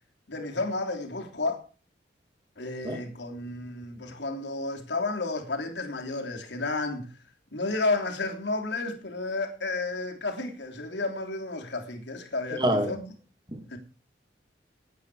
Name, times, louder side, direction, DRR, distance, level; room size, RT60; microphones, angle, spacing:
voice 1, 0.3-1.6 2.6-7.2 7.5-13.1 13.7-13.8, left 3 dB, 85° left, 3.3 m, -32 dB
voice 2, 12.5-12.9 13.5-13.8, equal, 25° right, 2.8 m, -27 dB
18.0 x 8.8 x 4.9 m
head